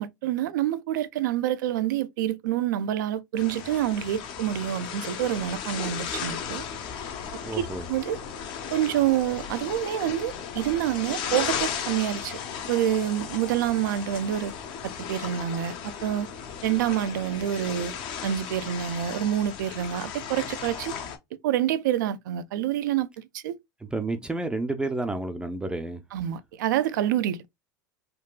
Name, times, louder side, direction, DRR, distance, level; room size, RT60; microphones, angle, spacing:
voice 1, 0.0-6.6 7.5-8.2 8.7-12.4 12.7-14.5 14.8-16.3 16.6-18.0 18.2-21.0 21.4-23.6 26.1-27.4, right 11 dB, 80° right, 0.4 m, -27 dB
sound 1, 3.4-21.2, left 7 dB, 55° left, 0.8 m, -35 dB
voice 2, 7.4-7.9 23.9-26.0, right 2 dB, 10° right, 0.4 m, -30 dB
3.7 x 2.3 x 2.2 m
supercardioid pair, 105°, 10 cm